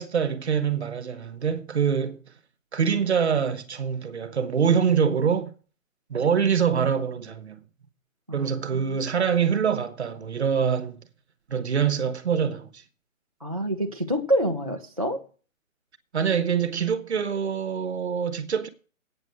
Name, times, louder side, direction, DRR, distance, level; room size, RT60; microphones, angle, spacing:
voice 1, 0.0-2.2 2.7-5.6 6.1-7.6 8.3-11.0 11.5-12.8 16.1-18.7, right 7 dB, 55° right, 1.2 m, -25 dB
voice 2, 8.3-9.0 13.4-15.2, equal, 25° right, 0.5 m, -27 dB
8.9 x 7.0 x 7.4 m
hypercardioid pair, 180°, 41 cm